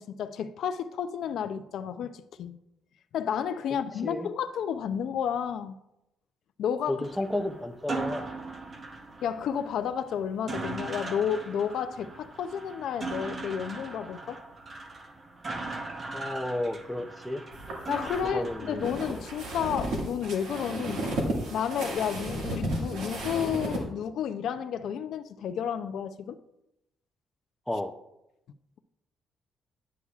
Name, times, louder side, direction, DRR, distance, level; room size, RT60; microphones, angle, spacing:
voice 1, 0.0-2.6 3.1-5.8 6.6-7.1 9.2-14.4 17.9-21.1 21.5-26.4, left 8 dB, 70° left, 0.4 m, -31 dB
voice 2, 6.9-8.3 16.1-17.4 18.3-18.9 27.7-27.9, left 1 dB, 5° left, 0.5 m, -32 dB
sound 1, 7.0-19.7, right 3 dB, 30° right, 0.8 m, -39 dB
sound 2, 17.5-23.8, right 1 dB, 85° right, 1.8 m, -33 dB
9.6 x 8.3 x 2.4 m
cardioid pair, 130°, 0 cm